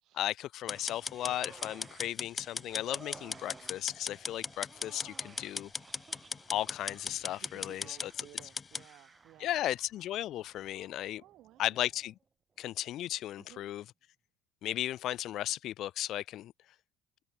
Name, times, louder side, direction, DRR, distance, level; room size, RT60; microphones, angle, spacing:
voice 1, 0.1-5.7 6.5-8.1 9.4-11.2 11.6-12.2 12.6-13.8 14.6-16.5, left 13 dB, 55° left, 1.5 m, -35 dB
sound 1, 0.7-8.9, left 5 dB, 25° left, 0.5 m, -38 dB
sound 2, 0.7-12.2 12.6-12.7, right 5 dB, 30° right, 2.7 m, -57 dB
voice 2, 7.4-9.6 11.2-11.8 13.4-13.6, right 16 dB, 60° right, 5.2 m, -57 dB
supercardioid pair, 90°, 0 cm